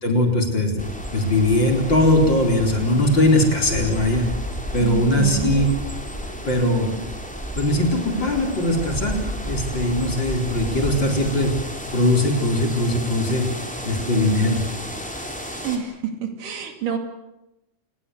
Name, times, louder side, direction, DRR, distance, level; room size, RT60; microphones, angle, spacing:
voice 1, 0.0-4.3 4.7-5.7 6.4-6.9 7.6-9.2 9.4-11.5 11.9-13.5 13.8-14.6, left 1 dB, 35° left, 3 dB, 4.7 m, -20 dB
sound 1, 0.8-15.8, equal, ahead, 3.4 m, -32 dB
voice 2, 4.8-5.7 15.6-15.9 16.2-17.0, right 7 dB, 75° right, 6 dB, 4.0 m, -27 dB
29.0 x 20.0 x 8.0 m, 0.93 s
omnidirectional pair, 3.8 m